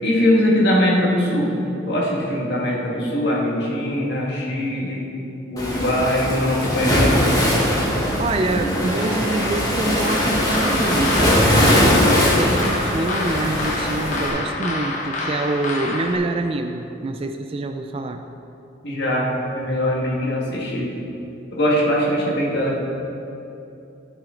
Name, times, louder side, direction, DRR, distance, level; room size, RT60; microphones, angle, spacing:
voice 1, 0.0-1.5 1.9-5.0 5.5-7.1 18.8-20.9 21.5-22.8, left 1 dB, 55° left, -4 dB, 1.8 m, -21 dB
Waves surf, 5.6-14.3, equal, 20° left, 1.3 m, -20 dB
voice 2, 8.2-18.2, right 2 dB, 30° right, 7 dB, 0.3 m, -26 dB
sound 1, 10.0-16.1, left 2 dB, 40° left, 0.9 m, -28 dB
12.5 x 6.2 x 3.8 m, 2.9 s
head